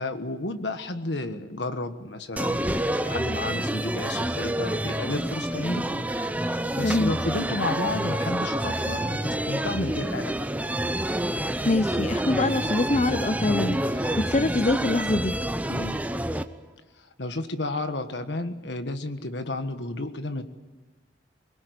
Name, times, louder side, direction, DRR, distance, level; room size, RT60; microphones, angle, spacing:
voice 1, 0.0-10.4 15.7-16.0 17.0-20.4, left 2 dB, 75° left, 9 dB, 1.5 m, -32 dB
sound 1, 2.4-16.4, right 1 dB, 10° right, 0.8 m, -28 dB
voice 2, 11.6-15.4, left 2 dB, 35° left, 11 dB, 0.7 m, -24 dB
23.5 x 21.5 x 8.2 m, 1.2 s
head